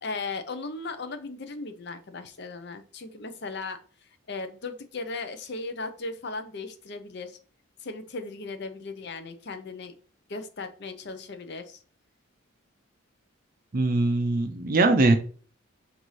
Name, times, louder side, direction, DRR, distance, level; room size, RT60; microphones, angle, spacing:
voice 1, 0.0-3.8 4.3-7.4 7.8-9.9 10.3-11.8 15.1-15.2, left 3 dB, 50° left, 9 dB, 0.6 m, -37 dB
voice 2, 13.7-15.2, right 2 dB, 40° right, 7 dB, 0.5 m, -21 dB
5.5 x 2.6 x 3.1 m, 0.41 s
head